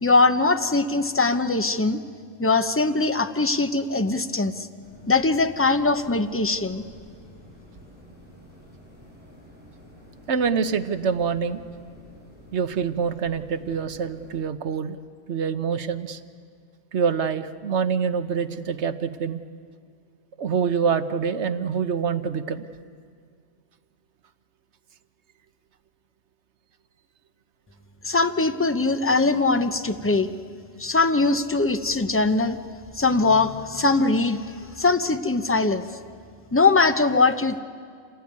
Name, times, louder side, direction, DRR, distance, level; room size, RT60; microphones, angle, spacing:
voice 1, 0.0-2.0 2.4-4.7 5.1-6.8 28.0-30.3 30.8-32.6 33.0-34.4 34.8-35.9 36.5-37.6, left 3 dB, 15° left, 9 dB, 0.6 m, -21 dB
sound 1, 4.8-14.4, equal, 5° right, 6.3 m, -49 dB
voice 2, 10.3-11.6 12.5-15.0 15.3-16.2 16.9-19.4 20.4-22.7, right 6 dB, 65° right, 10 dB, 1.2 m, -25 dB
27.0 x 17.5 x 9.5 m, 2.1 s
omnidirectional pair, 1.3 m